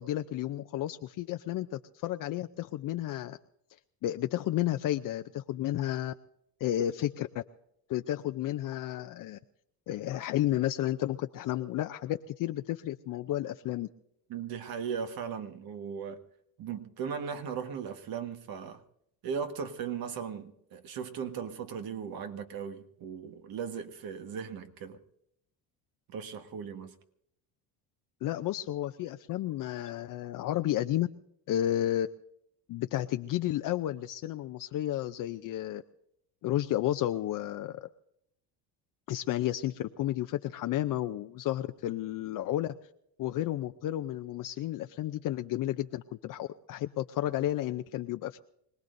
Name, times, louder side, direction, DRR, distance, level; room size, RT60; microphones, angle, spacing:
voice 1, 0.0-3.4 4.0-6.1 6.6-7.4 7.9-9.4 9.9-13.9 28.2-31.1 31.5-32.1 32.7-35.8 36.4-37.9 39.1-42.7 43.2-48.4, left 13 dB, 55° left, 0.6 m, -32 dB
voice 2, 14.3-16.2 16.6-18.8 19.2-25.0 26.1-26.9, right 7 dB, 60° right, 1.6 m, -37 dB
25.5 x 19.0 x 2.6 m
cardioid pair, 105°, 40 cm